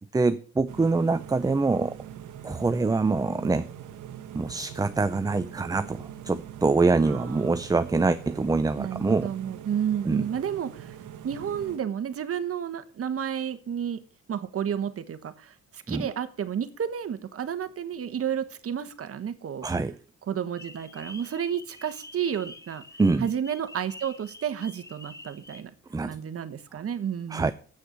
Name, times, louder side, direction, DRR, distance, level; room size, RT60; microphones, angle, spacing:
voice 1, 0.1-2.0 2.4-3.7 4.3-9.3 10.1-10.3 15.9-16.1 19.6-20.0 23.0-23.3 25.9-26.2 27.3-27.5, right 3 dB, 10° right, 0.5 m, -25 dB
sound 1, 0.7-11.8, right 10 dB, 80° right, 1.1 m, -43 dB
voice 2, 7.0-7.6 8.8-11.0 11.2-14.0 14.3-19.7 20.3-22.8 23.2-25.7 26.1-27.5, right 8 dB, 50° right, 1.2 m, -31 dB
sound 2, 20.6-25.6, left 2 dB, 10° left, 0.9 m, -47 dB
8.1 x 6.4 x 7.8 m
cardioid pair, 90°, 30 cm